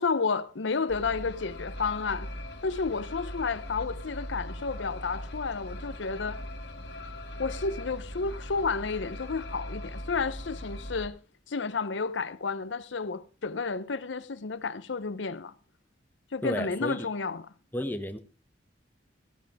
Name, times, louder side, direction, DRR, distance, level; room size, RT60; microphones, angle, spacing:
voice 1, 0.0-2.3 2.6-6.4 7.4-11.2 11.5-15.5 16.3-17.4, left 4 dB, 80° left, 0.7 m, -31 dB
sound 1, 0.9-11.1, left 1 dB, 65° left, 2.2 m, -40 dB
voice 2, 16.4-17.1 17.7-18.2, equal, 10° left, 0.9 m, -32 dB
15.0 x 14.5 x 3.5 m
head